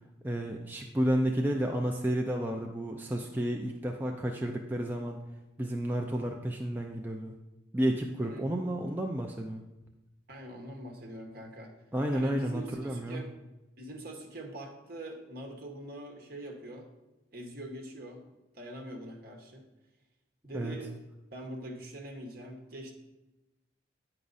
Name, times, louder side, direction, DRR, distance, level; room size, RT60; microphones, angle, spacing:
voice 1, 0.2-5.2 5.6-7.3 7.7-9.6 11.9-13.2 20.5-20.8, right 1 dB, 10° right, 1 dB, 0.4 m, -31 dB
voice 2, 10.3-11.7 12.1-13.3 13.8-16.9 17.3-18.2 18.5-19.6 20.4-20.9 21.3-22.9, right 1 dB, 50° right, 2 dB, 1.1 m, -43 dB
8.9 x 4.8 x 4.0 m, 1.0 s
head